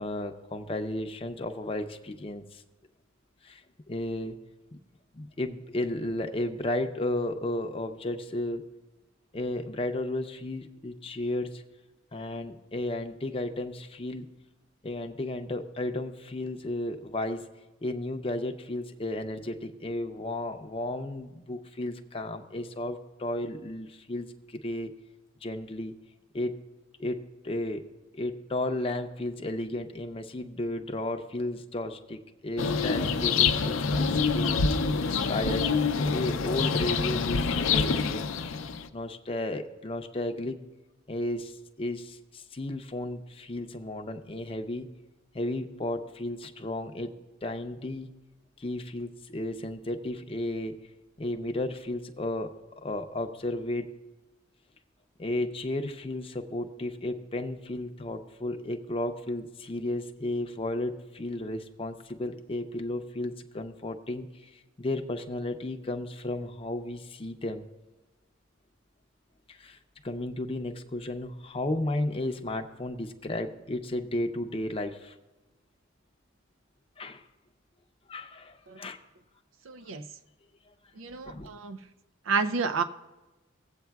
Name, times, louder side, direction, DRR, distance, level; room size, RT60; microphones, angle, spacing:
voice 1, 0.0-2.6 3.4-3.6 3.9-4.4 4.7-4.8 5.1-8.6 9.3-11.6 12.1-14.3 14.8-17.5 17.8-24.9 25.4-26.0 26.3-26.6 27.0-27.8 28.1-34.6 35.1-35.7 36.1-38.2 38.9-40.6 41.1-44.9 45.3-47.1 47.4-48.1 48.6-50.8 51.2-52.5 52.8-53.9 55.2-64.3 64.5-67.7 69.5-69.8 70.0-75.1 77.0-77.2 78.1-79.0 81.0-81.5, left 1 dB, 30° left, 5 dB, 0.6 m, -33 dB
sound 1, 32.6-38.9, left 5 dB, 75° left, 0.5 m, -26 dB
voice 2, 79.7-80.0 81.0-81.8 82.3-82.8, right 5 dB, 75° right, 9 dB, 0.5 m, -30 dB
18.5 x 8.1 x 2.3 m, 1.1 s
head